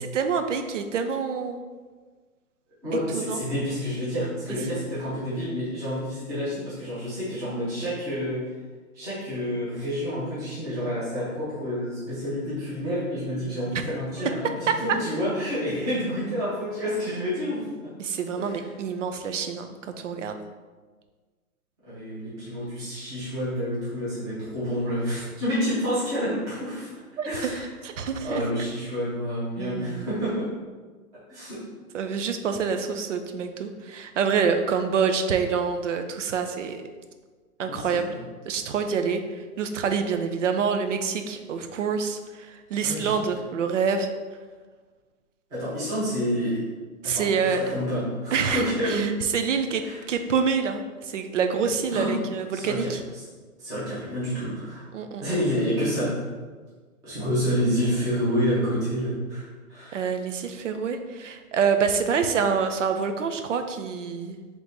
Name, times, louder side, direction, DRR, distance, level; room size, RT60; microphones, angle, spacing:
voice 1, 0.1-1.6 3.1-3.4 4.5-4.6 14.2-14.3 14.7-14.8 18.0-20.4 27.2-27.5 27.8-28.4 29.6-30.1 31.9-36.8 37.6-38.1 38.4-44.1 47.0-47.6 48.3-53.0 54.9-55.2 59.9-64.4, right 6 dB, 55° right, 7 dB, 0.5 m, -27 dB
voice 2, 2.8-8.5 8.9-17.7 18.3-18.6 21.9-26.9 27.2-27.7 28.2-30.5 31.3-31.6 37.6-38.2 42.8-43.3 45.5-46.6 47.0-49.1 49.8-50.0 51.9-52.1 52.5-52.9 53.6-54.8 55.2-56.3 57.0-60.0, equal, 10° right, -12 dB, 0.8 m, -29 dB
3.4 x 3.0 x 4.0 m, 1.4 s
hypercardioid pair, 155°, 45 cm